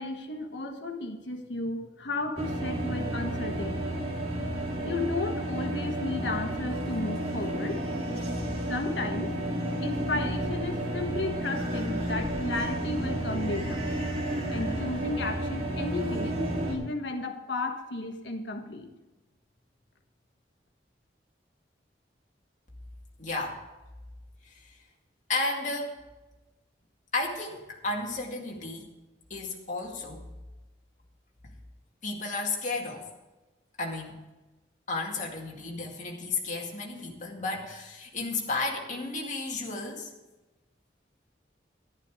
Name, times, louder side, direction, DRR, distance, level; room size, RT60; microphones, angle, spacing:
voice 1, 0.0-4.1 4.8-7.8 8.7-9.4 9.8-13.9 14.5-16.4 16.7-18.9, left 2 dB, 80° left, 4 dB, 1.5 m, -33 dB
sound 1, 2.4-16.7, right 1 dB, 35° right, 2.3 m, -31 dB
voice 2, 23.2-23.6 24.4-24.5 25.3-26.0 27.1-28.9 29.3-30.2 32.0-33.1 33.8-34.2 34.9-40.1, left 3 dB, 40° left, -1 dB, 2.2 m, -33 dB
12.0 x 11.0 x 5.0 m, 1.1 s
head